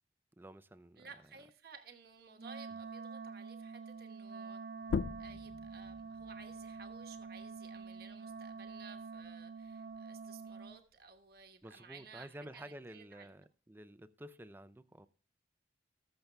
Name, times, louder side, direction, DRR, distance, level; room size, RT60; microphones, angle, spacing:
voice 1, 0.4-1.1 2.7-2.8 11.6-15.1, right 1 dB, 10° right, 0.4 m, -51 dB
voice 2, 1.0-4.6 5.2-13.3, right 5 dB, 55° right, 1.1 m, -56 dB
Wind instrument woodwind instrument, 2.4-10.8, right 4 dB, 80° right, 0.9 m, -47 dB
sound 1, 4.8-10.0 10.4-12.2, left 5 dB, 75° left, 0.4 m, -43 dB
19.5 x 6.7 x 2.2 m
head